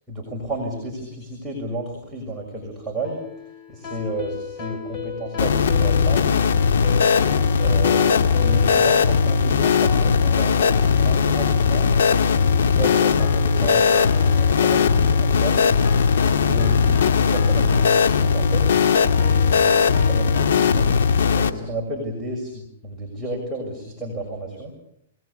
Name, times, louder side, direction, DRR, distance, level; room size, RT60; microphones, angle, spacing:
voice 1, 0.1-3.2 3.7-6.3 7.6-11.9 12.4-15.7 16.2-18.6 19.1-20.9 21.3-24.7, right 1 dB, 5° right, -4 dB, 6.4 m, -32 dB
sound 1, 3.0-20.7, left 5 dB, 35° left, 5.0 m, -36 dB
sound 2, 5.4-21.5, left 6 dB, 80° left, 2.1 m, -18 dB
27.0 x 19.5 x 10.0 m, 0.73 s
hypercardioid pair, 145°, 0 cm